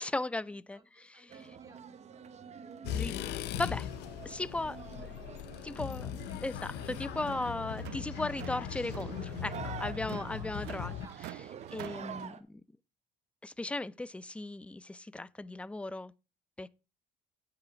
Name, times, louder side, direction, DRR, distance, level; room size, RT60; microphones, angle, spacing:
voice 1, 0.0-1.3 2.9-3.1 3.5-3.9 4.2-5.2 5.6-6.1 6.4-11.0 11.7-12.6 13.4-16.1 16.6-16.7, left 2 dB, 5° left, 0.4 m, -37 dB
voice 2, 0.7-1.8 3.1-3.4 3.8-4.0 4.3-4.4 5.1-6.4 10.1-10.5 10.9-11.2, right 3 dB, 20° right, 2.4 m, -58 dB
sound 1, 1.3-12.4, right 7 dB, 40° right, 1.0 m, -48 dB
sound 2, 2.8-11.1, left 10 dB, 80° left, 0.6 m, -39 dB
sound 3, 6.8-12.3, right 14 dB, 80° right, 0.5 m, -47 dB
9.0 x 5.7 x 5.1 m
cardioid pair, 110°, 17 cm